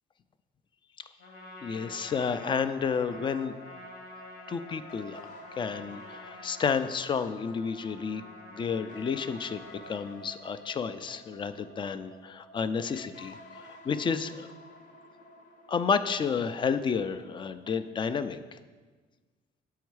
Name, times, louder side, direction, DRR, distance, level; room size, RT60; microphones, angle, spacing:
Trumpet, 1.2-10.2, left 1 dB, 75° left, 1.2 m, -48 dB
voice 1, 1.6-3.6 4.5-5.2 5.6-8.2 8.5-14.5 15.7-18.6, left 6 dB, 30° left, 12 dB, 0.3 m, -31 dB
sound 1, 2.5-18.0, left 1 dB, 50° left, 0.8 m, -52 dB
7.1 x 4.6 x 4.6 m, 1.4 s
cardioid pair, 110°, 17 cm